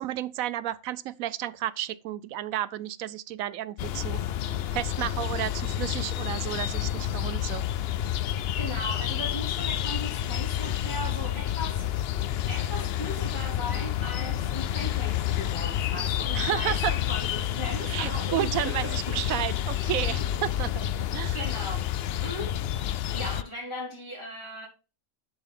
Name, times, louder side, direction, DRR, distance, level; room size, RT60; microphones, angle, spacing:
voice 1, 0.0-4.2 4.7-7.6 16.3-16.9 17.8-20.9 21.1-21.4, right 12 dB, 90° right, 1.0 m, -32 dB
sound 1, 3.8-23.4, left 11 dB, 65° left, 0.6 m, -29 dB
voice 2, 8.4-11.9 12.5-19.2 20.2-20.8 21.3-21.8 22.2-22.6 23.1-24.7, equal, 20° left, 3.5 m, -38 dB
11.0 x 5.6 x 3.8 m
omnidirectional pair, 1.4 m